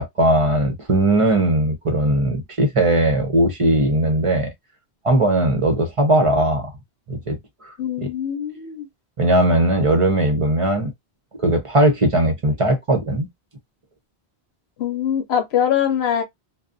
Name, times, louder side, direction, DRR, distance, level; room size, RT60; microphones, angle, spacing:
voice 1, 0.0-4.5 5.0-6.7 7.1-7.4 7.6-8.1 9.2-10.9 11.4-13.3, right 1 dB, 35° right, 0.6 m, -19 dB
voice 2, 7.8-8.9 14.8-16.2, left 9 dB, 75° left, 0.9 m, -22 dB
2.5 x 2.1 x 2.5 m
omnidirectional pair, 1.1 m